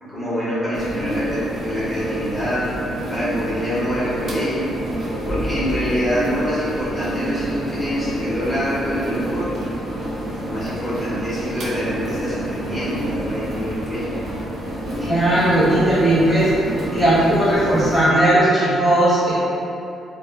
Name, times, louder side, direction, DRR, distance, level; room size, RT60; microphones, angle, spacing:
voice 1, 0.0-2.7 3.1-4.7 5.3-9.5 10.4-14.3, equal, 10° right, -12 dB, 1.4 m, -25 dB
sound 1, 0.7-18.0, right 1 dB, 55° right, 0.6 m, -28 dB
voice 2, 15.0-16.5 16.9-19.3, right 1 dB, 10° left, -14 dB, 1.1 m, -17 dB
3.4 x 2.1 x 2.3 m, 2.8 s
cardioid pair, 90°, 0 cm